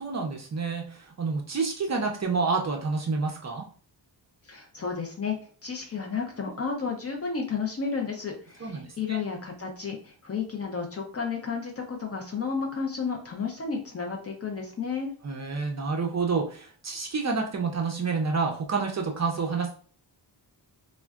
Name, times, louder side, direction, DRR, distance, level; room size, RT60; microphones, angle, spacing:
voice 1, 0.0-3.7 8.6-9.2 15.2-19.7, right 4 dB, 40° right, 2 dB, 0.5 m, -29 dB
voice 2, 4.5-5.4 5.6-15.1, left 5 dB, 35° left, 1 dB, 0.4 m, -32 dB
3.5 x 2.1 x 2.3 m, 0.43 s
wide cardioid pair, 175°, 45 cm